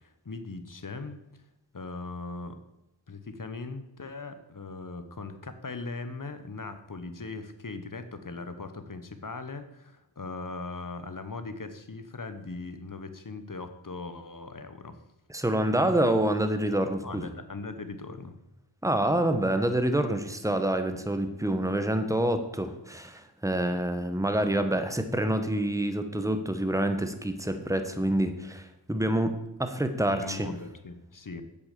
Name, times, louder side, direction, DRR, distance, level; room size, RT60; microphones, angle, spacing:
voice 1, 0.0-1.4 1.7-2.6 3.1-15.0 17.0-18.3 30.1-31.4, left 3 dB, 40° left, 9 dB, 1.2 m, -39 dB
voice 2, 15.3-17.3 18.8-29.3 29.6-30.5, right 1 dB, 5° right, 8 dB, 1.2 m, -27 dB
8.2 x 7.0 x 6.7 m, 0.90 s
wide cardioid pair, 60°, 48 cm